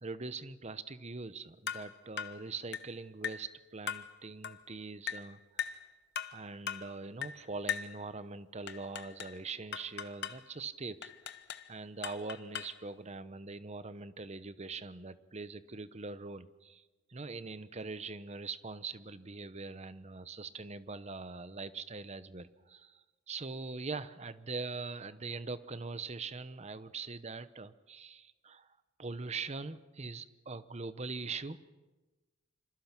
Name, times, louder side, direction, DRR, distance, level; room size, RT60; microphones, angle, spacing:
voice 1, 0.0-5.7 6.3-11.1 11.7-16.8 17.1-28.7 29.0-31.6, right 4 dB, 35° right, 13 dB, 0.9 m, -42 dB
sound 1, 1.7-1.9 2.2-2.4 2.7-2.9 3.2-3.5 3.9-4.1 4.4-4.6 5.1-5.3 5.6-5.8 6.1-6.4 6.7-6.9 7.2-7.4 7.7-7.9 8.7-9.4 9.7-10.4 11.0-11.7 12.0-12.8, left 8 dB, 55° left, 1.2 m, -39 dB
26.5 x 26.5 x 6.1 m, 1.2 s
head